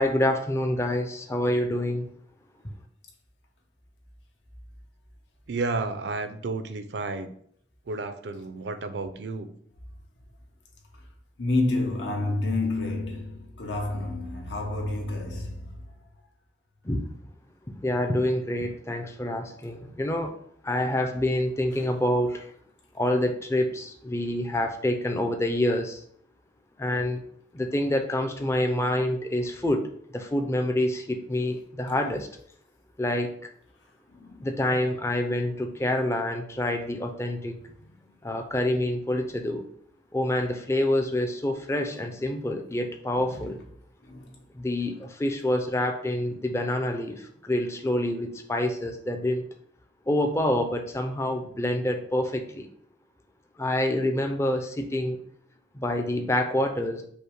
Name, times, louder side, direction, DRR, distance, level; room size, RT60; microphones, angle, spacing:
voice 1, 0.0-2.1 16.8-17.0 17.8-20.3 20.6-22.5 22.9-26.0 26.8-27.2 27.5-32.3 33.0-33.3 34.4-37.6 38.2-39.6 40.1-43.6 44.5-49.4 50.1-52.7 53.6-55.2 55.7-57.0, left 1 dB, 15° left, 0.4 m, -27 dB
voice 2, 5.5-7.3 7.9-9.5, right 3 dB, 70° right, 0.5 m, -32 dB
voice 3, 11.4-15.7 34.1-34.4 43.2-43.5 44.0-44.3, left 2 dB, 85° left, 1.0 m, -29 dB
5.3 x 2.1 x 4.5 m
head